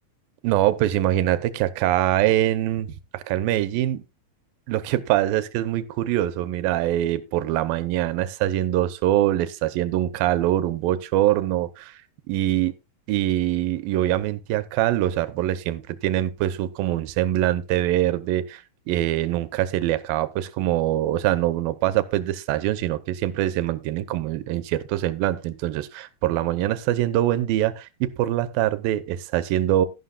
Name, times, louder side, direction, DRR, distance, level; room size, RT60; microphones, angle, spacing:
voice 1, 0.4-4.0 4.7-12.0 12.3-12.7 13.1-18.6 18.9-29.9, right 13 dB, 85° right, 2.5 m, -23 dB
12.5 x 11.5 x 2.4 m
omnidirectional pair, 4.1 m